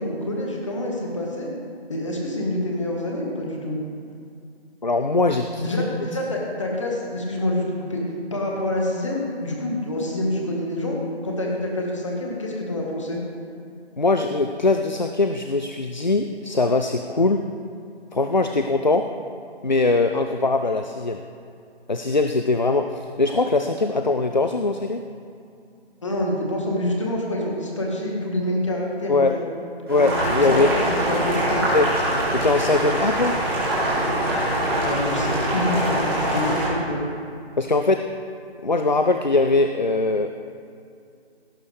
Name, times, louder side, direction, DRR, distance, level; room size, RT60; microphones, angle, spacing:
voice 1, 0.0-1.5 1.9-3.8 5.6-8.0 8.3-11.0 11.2-13.2 26.0-29.5 30.0-31.6 34.8-37.0, left 1 dB, 30° left, -2 dB, 1.9 m, -27 dB
voice 2, 4.8-5.6 14.0-17.4 18.1-19.0 19.6-21.2 21.9-25.0 29.1-29.3 29.9-30.7 31.7-31.9 32.3-33.3 37.6-38.0 38.6-40.3, left 3 dB, 45° left, 6 dB, 0.4 m, -21 dB
Boiling, 29.9-36.7, right 1 dB, 20° right, 3.1 m, -23 dB
17.5 x 10.5 x 3.5 m, 2.4 s
figure-of-eight pair, 175°, 33 cm